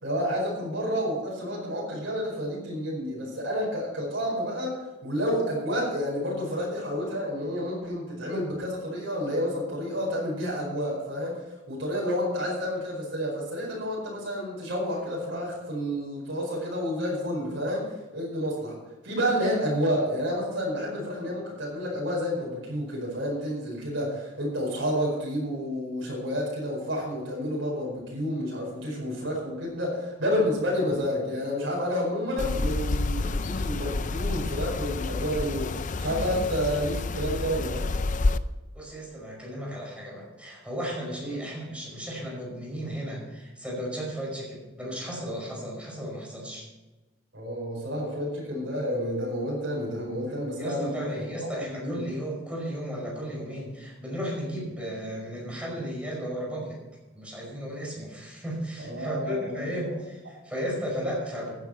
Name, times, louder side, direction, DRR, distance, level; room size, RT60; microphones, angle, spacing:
voice 1, 0.0-11.4 11.7-18.8 19.0-37.9 41.2-41.4 47.3-51.2 51.6-52.0 58.8-59.9, equal, 65° right, -4 dB, 5.0 m, -30 dB
sound 1, 32.4-38.4, left 3 dB, 40° left, 0.5 m, -29 dB
voice 2, 38.7-46.7 50.6-56.8 57.1-61.5, equal, 5° right, -3 dB, 5.4 m, -34 dB
15.0 x 9.6 x 4.5 m, 1.1 s
head